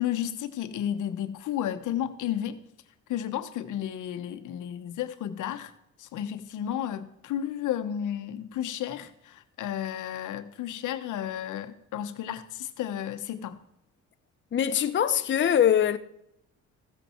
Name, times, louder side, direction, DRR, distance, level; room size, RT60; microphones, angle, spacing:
voice 1, 0.0-2.6 3.1-5.7 6.0-13.6, left 10 dB, 80° left, 1.1 m, -32 dB
voice 2, 14.5-16.0, left 9 dB, 40° left, 0.7 m, -22 dB
15.0 x 8.2 x 4.4 m
cardioid pair, 90°, 30 cm